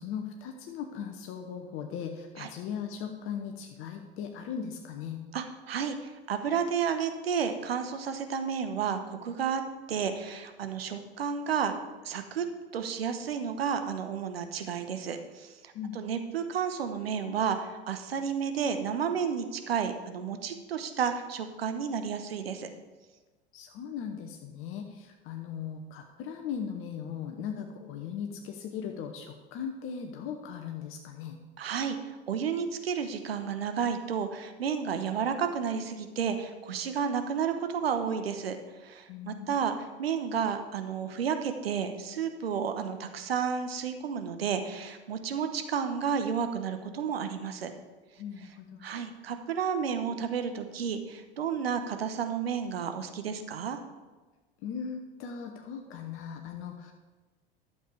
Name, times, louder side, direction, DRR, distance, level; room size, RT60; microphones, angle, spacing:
voice 1, 0.0-5.2 15.7-16.0 23.5-31.4 39.1-39.6 48.2-48.8 54.6-56.9, left 7 dB, 40° left, 3 dB, 1.0 m, -38 dB
voice 2, 5.3-9.6 9.9-11.7 12.0-12.4 12.7-22.7 31.6-32.0 32.3-38.6 38.8-47.7 48.8-53.8, right 7 dB, 70° right, 8 dB, 1.0 m, -31 dB
12.0 x 7.1 x 4.8 m, 1.3 s
figure-of-eight pair, 75°, 31 cm